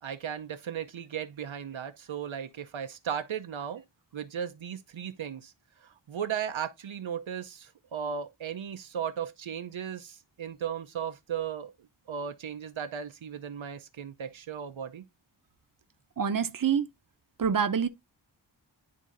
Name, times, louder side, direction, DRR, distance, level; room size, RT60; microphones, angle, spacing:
voice 1, 0.0-3.8 4.1-5.5 5.8-11.7 12.1-15.0, right 8 dB, 75° right, 0.7 m, -36 dB
voice 2, 16.2-16.9 17.4-17.9, right 7 dB, 45° right, 0.7 m, -26 dB
11.0 x 3.7 x 2.5 m
wide cardioid pair, 80°, 47 cm